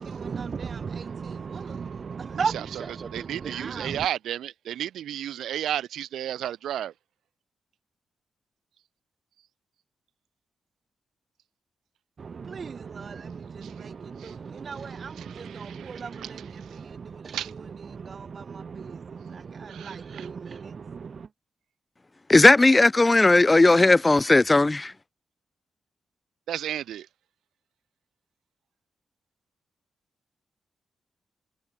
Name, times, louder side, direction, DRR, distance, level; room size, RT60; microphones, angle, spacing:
voice 1, 0.0-4.1 12.2-21.3, right 5 dB, 55° right, 4.1 m, -36 dB
voice 2, 3.1-6.9 13.6-13.9 14.2-14.4 15.2-16.3 16.6-16.8 17.3-17.5 19.7-20.3 26.5-27.1, right 11 dB, 80° right, 7.5 m, -33 dB
voice 3, 22.3-24.9, left 2 dB, 30° left, 1.4 m, -17 dB
hypercardioid pair, 40°, 0 cm